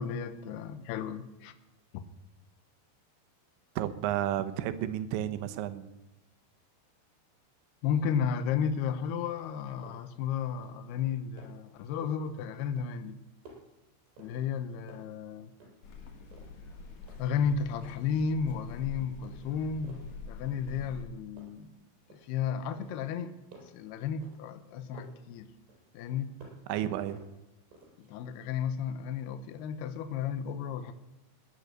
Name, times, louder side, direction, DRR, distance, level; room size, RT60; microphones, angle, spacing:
voice 1, 0.0-1.5 7.8-13.2 14.2-15.5 17.2-21.7 22.1-23.3 23.7-25.5 25.9-26.4 28.0-30.9, left 7 dB, 75° left, 2.7 m, -33 dB
voice 2, 3.8-5.9 26.7-27.2, right 12 dB, 85° right, 3.2 m, -32 dB
sound 1, 9.8-10.2 10.5-10.9 11.2-11.7 12.1-12.4 12.8-14.6 14.9-16.0 16.3-17.4 17.8-18.1 18.5-18.9 19.2-20.2 20.7-21.1 21.4-22.4 22.8-25.3 25.7-26.8 27.1-28.1, right 2 dB, 70° right, 5.9 m, -55 dB
sound 2, 15.8-21.0, left 4 dB, 55° left, 2.1 m, -46 dB
18.5 x 10.0 x 6.7 m
omnidirectional pair, 5.2 m